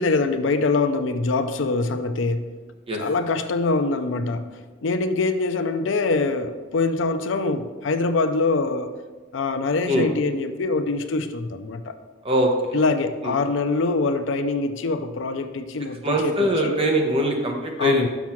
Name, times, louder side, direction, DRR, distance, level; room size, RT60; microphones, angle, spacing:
voice 1, 0.0-2.5 2.9-4.5 4.8-8.9 9.3-11.9 12.7-16.8 17.8-18.1, left 3 dB, 75° left, 9 dB, 0.5 m, -24 dB
voice 2, 12.2-12.8 13.2-13.3 16.0-18.1, equal, 30° right, 1 dB, 1.1 m, -22 dB
6.1 x 6.1 x 5.8 m, 1.3 s
head